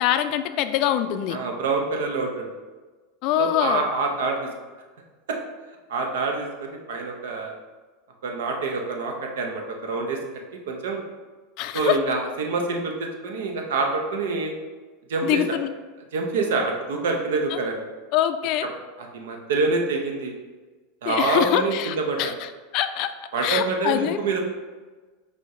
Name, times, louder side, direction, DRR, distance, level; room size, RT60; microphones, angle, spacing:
voice 1, 0.0-1.4 3.2-3.8 11.6-12.0 15.2-15.7 17.5-17.6 18.1-18.7 21.1-22.3 22.7-23.1 23.4-24.2, left 11 dB, 55° left, 9 dB, 0.3 m, -24 dB
voice 2, 1.3-2.5 3.4-4.5 5.3-5.4 5.9-7.5 8.2-10.2 10.7-11.0 11.7-14.5 15.1-15.6 16.1-17.8 19.0-20.3 21.0-22.3 23.3-24.4, right 3 dB, 80° right, 2 dB, 0.7 m, -26 dB
5.0 x 2.2 x 3.6 m, 1.3 s
hypercardioid pair, 110°, 0 cm